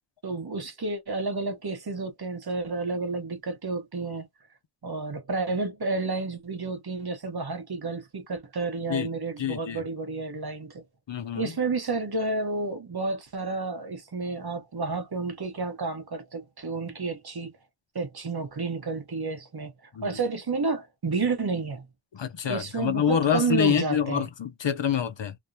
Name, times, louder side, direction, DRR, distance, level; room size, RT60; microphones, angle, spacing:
voice 1, 0.2-4.3 4.8-10.8 11.3-17.5 17.9-21.9 22.4-24.3, right 3 dB, 50° right, 0.8 m, -31 dB
voice 2, 9.4-9.8 11.1-11.5 20.0-20.1 22.1-25.4, left 7 dB, 60° left, 0.6 m, -26 dB
2.4 x 2.1 x 2.7 m
wide cardioid pair, 50°, 50 cm